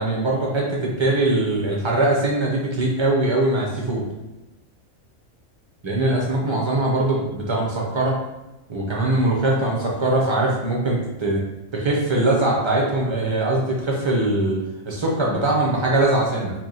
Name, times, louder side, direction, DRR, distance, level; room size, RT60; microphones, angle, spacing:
voice 1, 0.0-4.0 5.8-8.2 8.7-11.4 11.7-14.6 14.9-16.5, right 2 dB, 40° right, -2 dB, 0.4 m, -21 dB
2.9 x 2.5 x 3.9 m, 1.0 s
omnidirectional pair, 1.4 m